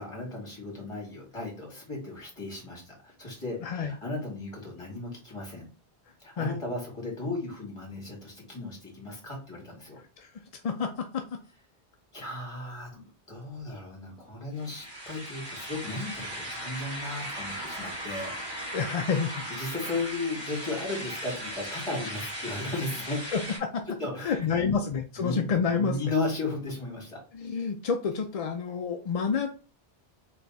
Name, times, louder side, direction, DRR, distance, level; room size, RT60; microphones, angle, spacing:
voice 1, 0.0-5.7 6.2-10.0 12.1-13.0 13.3-18.3 19.3-23.2 24.0-24.8 25.2-27.2, left 2 dB, 30° left, -1 dB, 1.9 m, -35 dB
voice 2, 3.6-3.9 6.4-6.6 10.2-10.9 18.7-19.4 23.3-23.8 24.2-26.0 27.3-29.5, left 5 dB, 50° left, 4 dB, 0.4 m, -29 dB
sound 1, 14.6-23.6, right 1 dB, 25° right, 1.8 m, -37 dB
3.4 x 3.2 x 4.0 m, 0.36 s
omnidirectional pair, 1.0 m